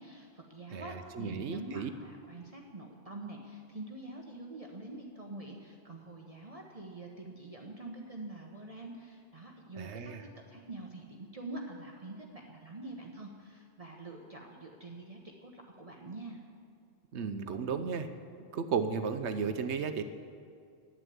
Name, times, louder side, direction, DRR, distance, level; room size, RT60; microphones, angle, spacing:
voice 1, 0.0-16.4, right 2 dB, 35° right, 0 dB, 1.1 m, -45 dB
voice 2, 0.7-1.9 9.8-10.2 17.1-18.1 18.5-20.0, right 6 dB, 80° right, 9 dB, 1.1 m, -34 dB
11.5 x 9.0 x 9.3 m, 2.3 s
omnidirectional pair, 1.1 m